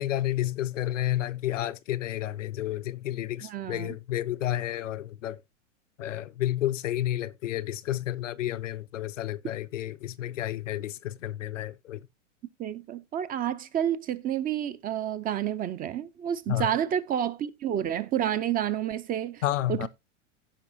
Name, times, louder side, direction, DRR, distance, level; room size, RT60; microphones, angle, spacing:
voice 1, 0.0-5.4 6.0-12.0 16.5-16.7 19.4-19.9, left 13 dB, 85° left, 0.7 m, -31 dB
voice 2, 3.4-3.9 12.6-19.4 19.7-19.9, right 10 dB, 25° right, 0.6 m, -29 dB
15.5 x 5.4 x 2.8 m
hypercardioid pair, 120°, 37 cm